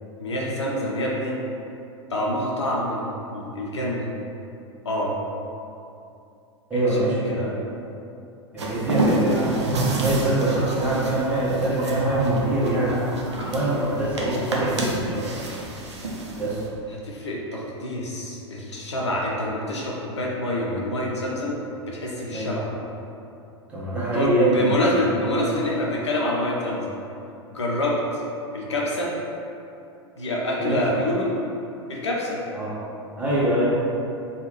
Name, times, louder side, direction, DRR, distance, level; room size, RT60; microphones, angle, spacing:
voice 1, 0.2-1.4 2.1-4.1 4.8-5.2 6.7-7.6 16.9-21.6 21.9-22.7 24.1-26.9 27.5-28.2 28.5-29.1 30.2-31.3 31.9-32.4, left 1 dB, 70° left, -3 dB, 0.6 m, -27 dB
voice 2, 6.7-7.5 8.5-13.1 13.4-15.3 16.4-16.6 22.3-22.5 23.7-25.5 30.6-30.8 32.5-32.7 33.2-33.7, right 1 dB, 10° right, -9 dB, 1.0 m, -24 dB
sound 1, 8.6-16.7, right 1 dB, 70° right, 0.5 m, -30 dB
sound 2, 9.5-14.7, right 2 dB, 40° right, 0.9 m, -30 dB
3.4 x 2.4 x 3.1 m, 2.7 s
figure-of-eight pair, 90°, 15 cm